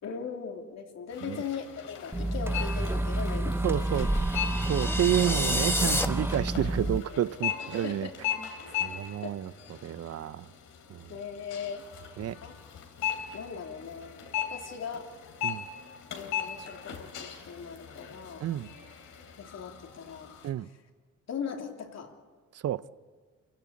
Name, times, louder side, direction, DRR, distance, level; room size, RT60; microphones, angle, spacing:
voice 1, 0.0-3.8 4.6-4.8 7.8-8.1 9.2-9.4 11.1-11.8 12.4-12.6 13.3-15.1 16.1-18.4 19.4-20.3 21.3-22.1, left 6 dB, 60° left, 3.1 m, -39 dB
sound 1, 1.1-20.5, left 9 dB, 80° left, 3.2 m, -39 dB
sound 2, 2.1-7.0, right 1 dB, 10° right, 0.7 m, -29 dB
voice 2, 3.6-4.1 4.7-8.1 8.8-10.5 10.9-11.0 12.2-12.4 15.4-15.6 18.4-18.7 20.4-20.7 22.6-22.8, right 11 dB, 55° right, 0.7 m, -30 dB
sound 3, 4.0-6.1, left 1 dB, 10° left, 1.3 m, -30 dB
27.5 x 16.5 x 8.5 m
cardioid pair, 90°, 30 cm